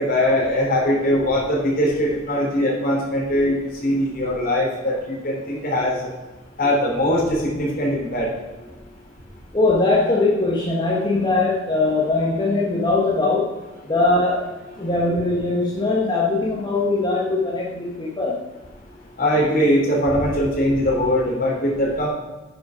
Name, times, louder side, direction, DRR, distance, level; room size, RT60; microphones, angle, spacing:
voice 1, 0.0-6.1 6.6-8.3 19.2-22.1, equal, 50° left, -4 dB, 3.4 m, -21 dB
voice 2, 9.5-13.5 13.8-18.4, left 2 dB, 25° left, -4 dB, 1.4 m, -21 dB
10.0 x 6.2 x 5.1 m, 1.1 s
head